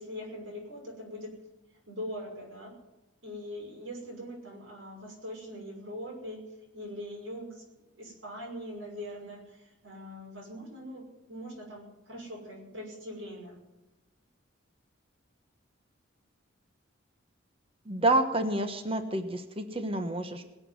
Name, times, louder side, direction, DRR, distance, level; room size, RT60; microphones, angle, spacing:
voice 1, 0.0-1.4 1.9-2.8 3.2-6.4 6.7-13.6, equal, 75° right, -2 dB, 5.9 m, -42 dB
voice 2, 17.8-20.5, right 2 dB, 25° right, 7 dB, 1.2 m, -29 dB
22.0 x 7.8 x 7.7 m, 1.0 s
head